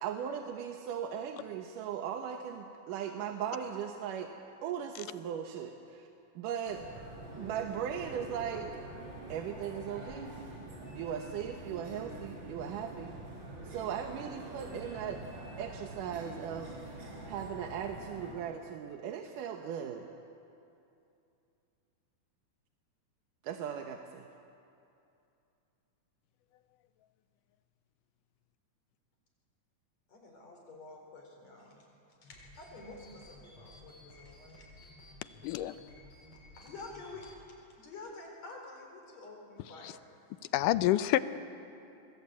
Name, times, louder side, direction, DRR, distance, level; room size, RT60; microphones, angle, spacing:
voice 1, 0.0-4.3 4.6-6.1 6.4-6.9 7.4-8.7 9.3-10.3 10.9-13.1 13.7-15.2 15.6-20.1 23.4-24.3, right 8 dB, 90° right, 4 dB, 2.7 m, -38 dB
sound 1, 6.7-18.3, right 1 dB, 35° right, 5.0 m, -46 dB
voice 2, 30.1-31.9 32.2-34.7 36.6-37.5 37.8-40.0, left 3 dB, 55° left, 1 dB, 5.5 m, -49 dB
sound 2, 32.2-37.3, left 1 dB, 40° left, 7.0 m, -55 dB
voice 3, 35.4-35.7 39.8-39.9 40.5-41.2, left 14 dB, 85° left, 13 dB, 2.3 m, -27 dB
26.5 x 22.0 x 8.5 m, 2.7 s
omnidirectional pair, 3.6 m